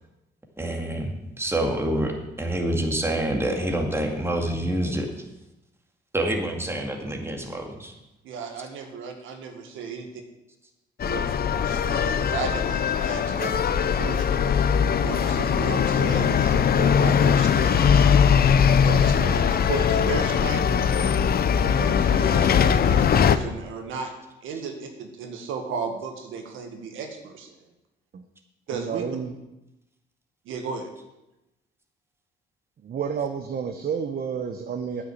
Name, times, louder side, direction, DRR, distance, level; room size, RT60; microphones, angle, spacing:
voice 1, 0.6-5.1 6.1-7.9, right 1 dB, 10° right, 2 dB, 2.1 m, -27 dB
voice 2, 8.2-10.1 11.0-13.5 13.8-14.2 15.0-17.9 18.8-20.8 21.7-24.1 24.4-27.6 28.7-29.1 30.5-30.9, right 5 dB, 85° right, 4 dB, 1.8 m, -34 dB
sound 1, 11.0-23.4, left 7 dB, 50° left, 0.7 m, -21 dB
voice 3, 28.7-29.3 32.8-35.0, right 7 dB, 50° right, 6 dB, 1.0 m, -30 dB
9.3 x 6.4 x 8.4 m, 0.95 s
cardioid pair, 90°, 20 cm